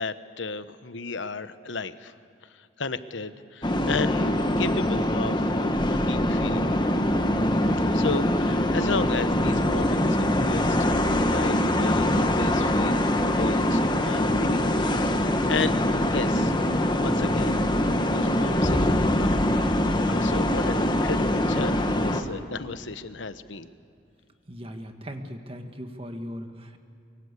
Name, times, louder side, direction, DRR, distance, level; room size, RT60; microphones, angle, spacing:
voice 1, 0.0-2.1 2.4-6.7 7.9-15.8 16.1-17.6 18.0-19.7 20.0-23.7, left 4 dB, 75° left, 12 dB, 1.1 m, -34 dB
sound 1, 3.6-22.2, left 1 dB, 25° left, 1.4 m, -23 dB
voice 2, 24.5-26.8, equal, 30° right, 5 dB, 1.6 m, -38 dB
24.0 x 24.0 x 8.2 m, 2.5 s
head